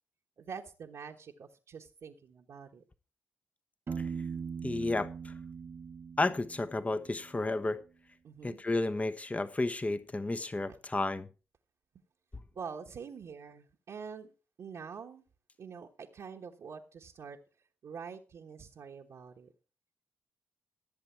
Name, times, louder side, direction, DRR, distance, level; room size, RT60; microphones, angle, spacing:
voice 1, 0.4-2.8 8.2-8.6 12.5-14.3 14.6-15.2 15.6-17.4 17.8-19.5, right 6 dB, 65° right, 1.2 m, -45 dB
Piano, 3.9-7.6, right 6 dB, 45° right, 0.6 m, -41 dB
voice 2, 4.6-5.3 6.2-7.8 8.4-11.3, left 2 dB, 25° left, 1.0 m, -32 dB
15.5 x 7.5 x 4.6 m
hypercardioid pair, 40°, 5 cm